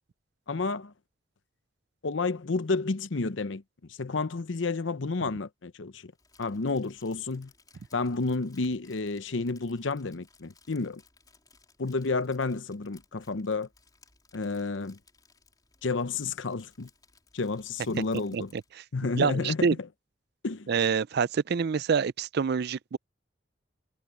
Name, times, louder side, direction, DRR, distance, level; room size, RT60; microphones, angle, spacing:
voice 1, 0.5-0.9 2.0-3.6 3.9-6.1 6.4-7.5 7.9-11.0 11.8-13.7 14.3-15.0 15.8-16.9 17.3-18.5 18.9-19.8 20.4-20.7, left 3 dB, 80° left, 0.8 m, -30 dB
Crumpling crinkling, 6.1-18.7, left 4 dB, 20° left, 3.5 m, -62 dB
voice 2, 19.2-19.7 20.7-23.0, right 6 dB, 55° right, 0.4 m, -26 dB
head